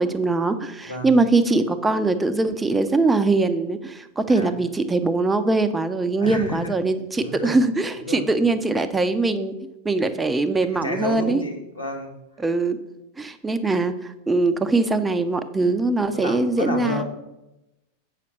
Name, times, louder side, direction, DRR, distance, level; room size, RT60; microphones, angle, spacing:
voice 1, 0.0-9.5 9.8-11.4 12.4-12.8 13.2-17.0, right 3 dB, 10° right, 9 dB, 0.6 m, -22 dB
voice 2, 0.9-1.2 4.3-4.5 6.2-6.6 7.2-7.5 7.9-8.4 10.0-10.2 10.8-12.1 16.1-17.0, left 1 dB, 85° left, 0 dB, 2.0 m, -31 dB
8.3 x 5.7 x 6.2 m, 0.92 s
figure-of-eight pair, 90°, 0 cm